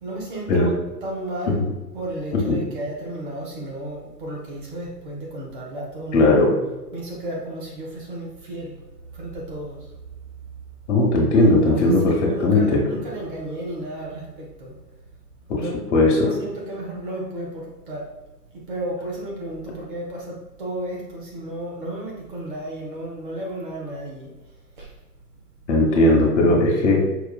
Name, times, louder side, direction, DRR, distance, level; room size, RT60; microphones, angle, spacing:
voice 1, 0.0-1.6 1.9-6.5 6.9-8.8 9.1-10.0 11.4-14.8 15.5-18.1 18.5-25.0 26.0-26.1, right 1 dB, 30° right, -2 dB, 0.8 m, -33 dB
voice 2, 6.1-6.5 10.9-12.1 12.4-12.8 15.9-16.3 25.7-27.0, left 2 dB, 45° left, -2 dB, 1.1 m, -17 dB
5.6 x 2.3 x 2.3 m, 1.1 s
figure-of-eight pair, 120°, 49 cm